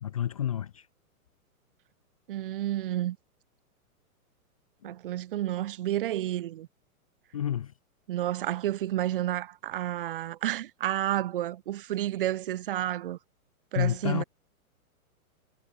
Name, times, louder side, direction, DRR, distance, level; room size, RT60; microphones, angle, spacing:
voice 1, 0.0-0.9 4.9-5.0 7.3-7.7 13.7-14.2, left 10 dB, 25° left, 0.6 m, -29 dB
voice 2, 2.3-3.2 4.8-6.7 8.1-13.2 13.7-14.2, right 13 dB, 40° right, 1.3 m, -30 dB
hypercardioid pair, 175°, 43 cm